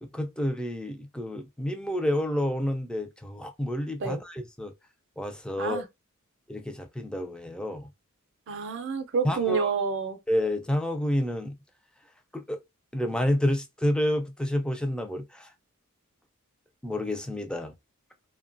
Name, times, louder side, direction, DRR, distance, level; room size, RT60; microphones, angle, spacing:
voice 1, 0.0-4.7 5.2-5.8 6.5-7.9 9.2-9.7 10.3-11.6 12.3-12.6 12.9-15.5 16.8-17.7, left 1 dB, 5° left, 0.4 m, -29 dB
voice 2, 8.5-10.2, right 5 dB, 55° right, 0.5 m, -28 dB
2.8 x 2.2 x 2.6 m
head